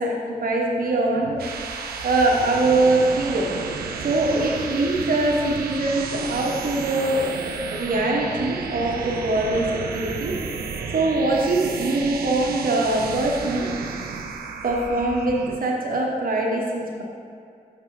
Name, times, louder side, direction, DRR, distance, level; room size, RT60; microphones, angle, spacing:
voice 1, 0.0-1.4 2.0-3.5 4.0-10.4 10.9-13.7 14.6-17.0, right 2 dB, 65° right, -1 dB, 1.3 m, -23 dB
sound 1, 1.1-15.7, right 5 dB, 85° right, 0.5 m, -32 dB
7.2 x 5.9 x 3.3 m, 2.4 s
cardioid pair, 50°, 16 cm